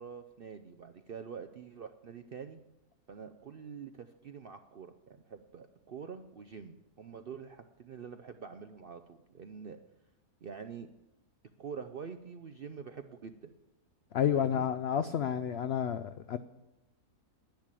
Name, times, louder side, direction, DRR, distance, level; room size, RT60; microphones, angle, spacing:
voice 1, 0.0-2.6 3.1-9.8 10.4-10.9 11.6-13.5 14.3-14.7, right 6 dB, 60° right, 8 dB, 0.6 m, -46 dB
voice 2, 14.1-16.4, left 9 dB, 80° left, 12 dB, 0.5 m, -30 dB
10.5 x 10.5 x 7.5 m, 1.0 s
omnidirectional pair, 1.7 m